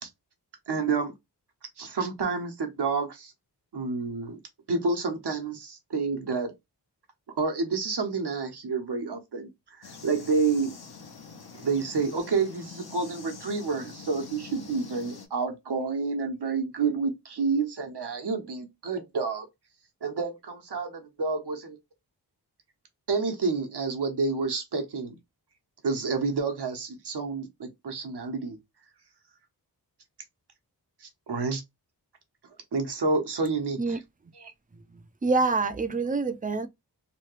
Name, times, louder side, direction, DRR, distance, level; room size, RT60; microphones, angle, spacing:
voice 1, 0.7-1.1 1.8-3.3 3.7-4.4 4.7-6.5 7.4-10.7 11.6-19.5 20.0-21.8 23.1-25.2 25.8-28.6 31.0-31.6 32.7-34.0 34.4-34.5, right 4 dB, 70° right, 1.0 m, -29 dB
sound 1, 9.8-15.3, left 5 dB, 65° left, 0.9 m, -45 dB
voice 2, 34.7-36.7, right 3 dB, 20° right, 0.4 m, -27 dB
3.1 x 2.3 x 3.1 m
wide cardioid pair, 55°, 41 cm